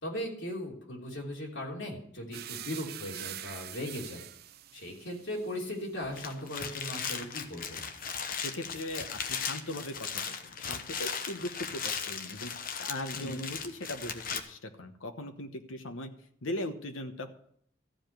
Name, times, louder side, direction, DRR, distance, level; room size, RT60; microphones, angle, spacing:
voice 1, 0.0-4.2 4.7-7.8 13.1-13.4, left 1 dB, 70° left, -2 dB, 3.3 m, -38 dB
sound 1, 2.3-10.3 10.6-11.7, right 12 dB, 50° right, 0.5 m, -47 dB
sound 2, 6.0-14.4, left 6 dB, 45° left, 1.0 m, -37 dB
voice 2, 8.4-12.5 12.8-16.1 16.4-17.3, left 1 dB, 90° left, 6 dB, 1.1 m, -39 dB
14.0 x 5.1 x 9.1 m, 0.64 s
head